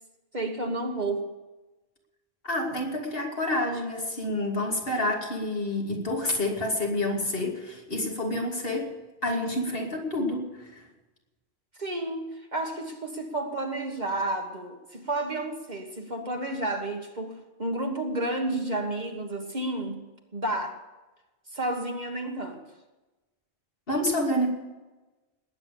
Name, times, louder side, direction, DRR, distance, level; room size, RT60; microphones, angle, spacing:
voice 1, 0.3-1.3 11.8-20.8 21.5-22.6, right 2 dB, 45° right, 3 dB, 1.5 m, -31 dB
voice 2, 2.4-8.9 9.2-10.9 23.9-24.5, left 1 dB, 60° left, 0 dB, 3.0 m, -28 dB
20.0 x 9.0 x 7.0 m, 1.1 s
omnidirectional pair, 1.1 m